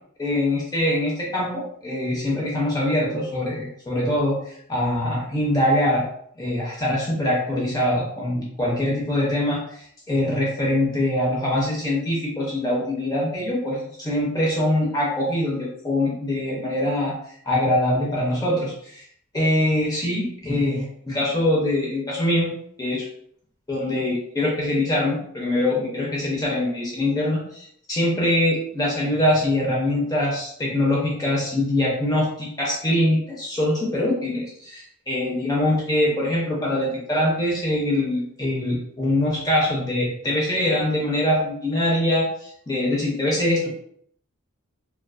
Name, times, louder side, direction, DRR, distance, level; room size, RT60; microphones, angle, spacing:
voice 1, 0.2-6.0 6.4-17.1 17.5-19.0 19.3-23.1 23.7-43.7, left 1 dB, 15° left, -4 dB, 0.5 m, -23 dB
2.4 x 2.3 x 2.3 m, 0.66 s
head